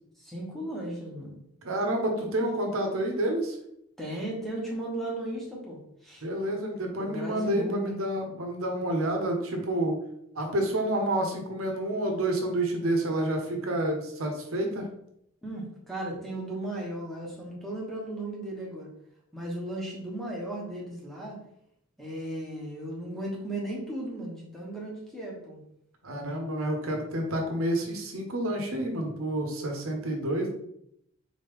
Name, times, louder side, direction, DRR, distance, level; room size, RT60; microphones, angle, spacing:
voice 1, 0.2-1.4 4.0-6.2 6.9-8.0 15.4-18.9 19.3-21.4 22.0-25.6, right 1 dB, ahead, -4 dB, 1.0 m, -36 dB
voice 2, 1.6-3.6 6.2-10.0 10.3-14.9 26.0-30.5, right 1 dB, 85° right, 3 dB, 0.9 m, -29 dB
4.0 x 3.2 x 3.5 m, 0.74 s
head